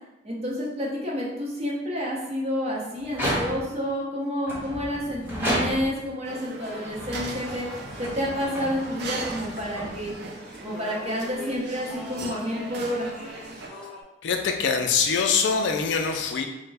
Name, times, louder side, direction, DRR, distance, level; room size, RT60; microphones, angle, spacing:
voice 1, 0.2-7.7 8.0-10.1 10.6-13.1, equal, 35° right, -4 dB, 0.7 m, -29 dB
sound 1, 3.0-3.9 4.4-6.1 6.8-10.4, equal, 10° right, 1.0 m, -32 dB
sound 2, 6.2-13.7, right 3 dB, 65° right, 0.4 m, -39 dB
sound 3, 6.6-14.0, left 2 dB, 5° left, 0.4 m, -43 dB
voice 2, 14.2-16.5, left 5 dB, 70° left, 4 dB, 0.4 m, -24 dB
3.2 x 2.1 x 3.3 m, 0.94 s
head